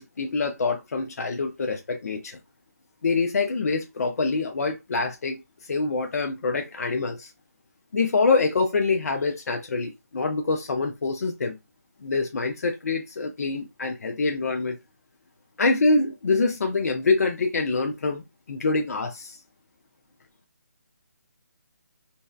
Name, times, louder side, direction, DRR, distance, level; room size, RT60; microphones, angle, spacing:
voice 1, 0.0-2.4 3.0-7.3 7.9-11.6 12.0-14.8 15.6-19.4, left 3 dB, 65° left, 0.5 m, -25 dB
2.7 x 2.1 x 2.3 m
figure-of-eight pair, 155°, 9 cm